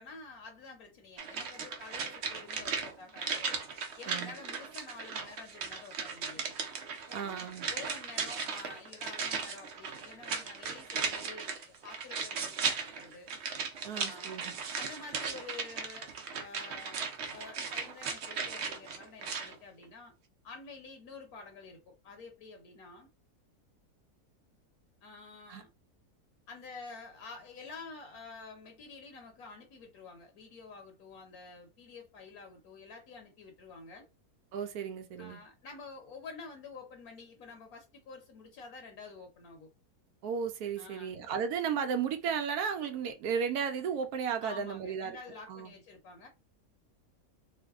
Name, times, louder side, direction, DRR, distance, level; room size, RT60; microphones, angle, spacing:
voice 1, 0.0-3.6 4.0-6.5 7.1-13.3 13.9-14.4 14.7-20.1 20.4-23.1 25.0-25.7 26.5-34.1 35.2-39.7 40.8-41.1 44.4-46.3, left 4 dB, 70° left, 1.3 m, -49 dB
sound 1, 1.2-19.5 19.8-19.9, right 5 dB, 60° right, 0.7 m, -37 dB
voice 2, 7.1-7.7 13.8-14.5 25.5-25.6 34.5-35.4 40.2-45.2 45.5-45.7, right 7 dB, 75° right, 1.1 m, -34 dB
3.1 x 2.1 x 3.5 m
omnidirectional pair, 1.7 m